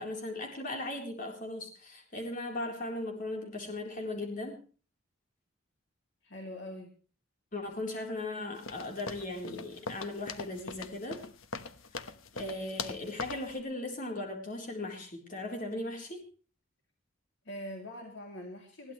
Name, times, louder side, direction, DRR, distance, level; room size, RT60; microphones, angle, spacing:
voice 1, 0.0-4.6 7.5-11.2 12.3-16.2, left 2 dB, 40° left, 2 dB, 4.0 m, -38 dB
voice 2, 6.2-6.9 17.4-18.9, left 1 dB, 60° left, 2 dB, 3.1 m, -43 dB
sound 1, 8.6-13.6, left 4 dB, 80° left, 1.1 m, -42 dB
21.0 x 15.5 x 3.3 m, 0.38 s
head